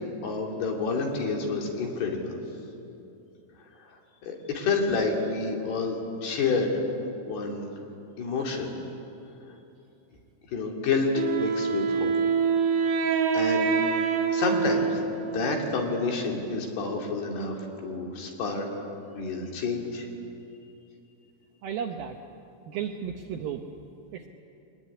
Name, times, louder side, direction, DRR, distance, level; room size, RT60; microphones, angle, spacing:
voice 1, 0.2-2.4 3.8-4.0 4.2-6.8 7.3-7.7 8.2-8.7 10.5-12.1 13.3-13.7 14.3-17.6 17.8-18.7 19.1-20.1, left 4 dB, 65° left, 1 dB, 4.4 m, -29 dB
Wind instrument woodwind instrument, 11.1-15.9, right 5 dB, 60° right, 2.6 m, -26 dB
voice 2, 21.6-22.2 22.7-23.6 24.1-24.3, right 8 dB, 75° right, 4 dB, 2.2 m, -33 dB
24.5 x 19.5 x 9.9 m, 2.7 s
omnidirectional pair, 5.2 m